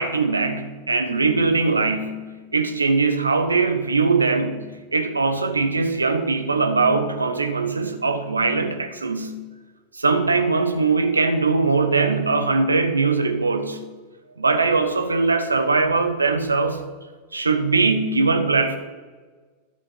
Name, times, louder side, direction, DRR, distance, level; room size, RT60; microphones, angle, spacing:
voice 1, 0.0-9.5 9.9-13.9 14.4-16.8 17.3-18.8, right 4 dB, 80° right, 8 dB, 1.1 m, -21 dB
12.5 x 7.4 x 6.7 m, 1.4 s
figure-of-eight pair, 90°, 0 cm